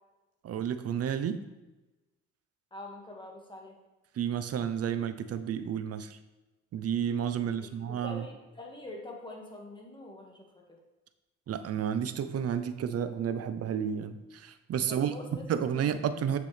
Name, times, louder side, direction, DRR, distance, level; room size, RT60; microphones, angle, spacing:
voice 1, 0.4-1.4 4.2-6.2 6.7-8.2 11.5-15.1 15.5-16.4, right 8 dB, 55° right, 11 dB, 0.7 m, -31 dB
voice 2, 2.7-3.8 7.4-10.6 14.8-15.4 15.7-15.9, left 1 dB, 15° left, 0 dB, 1.8 m, -45 dB
7.7 x 6.6 x 3.4 m, 1.1 s
cardioid pair, 90°, 30 cm